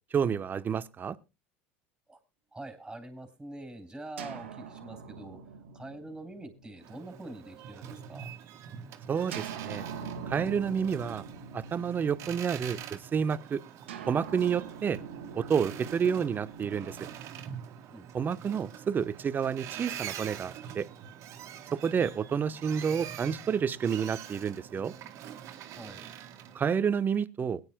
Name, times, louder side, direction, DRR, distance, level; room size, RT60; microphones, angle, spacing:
voice 1, 0.1-1.2 9.1-9.9 10.3-11.2 11.5-13.6 14.1-15.0 15.3-17.0 18.1-20.9 21.7-24.9 26.5-27.6, right 7 dB, 30° right, 0.9 m, -29 dB
voice 2, 2.5-5.4 5.7-8.3 17.9-18.2 25.8-26.1, right 2 dB, 10° right, 3.6 m, -45 dB
sound 1, 4.2-8.0 9.3-12.9 13.9-18.0, right 6 dB, 90° right, 1.7 m, -44 dB
Boat Water vehicle, 6.8-26.6, right 9 dB, 55° right, 1.9 m, -45 dB
21.5 x 9.7 x 2.2 m
hypercardioid pair, 85°, 6 cm